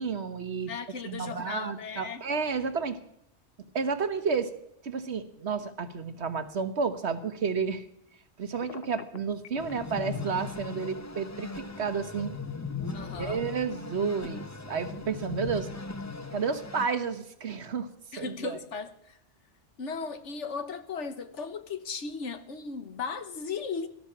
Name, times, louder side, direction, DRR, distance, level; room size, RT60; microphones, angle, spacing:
voice 1, 0.0-0.7 1.0-3.0 3.7-4.5 4.8-7.8 8.4-12.3 13.2-15.7 16.3-17.9 18.2-18.6, right 5 dB, 65° right, 1.5 m, -31 dB
voice 2, 0.7-2.3 12.9-13.4 18.1-19.2 19.8-23.9, left 5 dB, 75° left, 1.5 m, -36 dB
Telephone, 8.6-9.7, left 7 dB, 60° left, 0.9 m, -44 dB
sound 1, 9.6-16.9, left 4 dB, 20° left, 0.6 m, -38 dB
17.5 x 13.0 x 6.0 m
omnidirectional pair, 1.2 m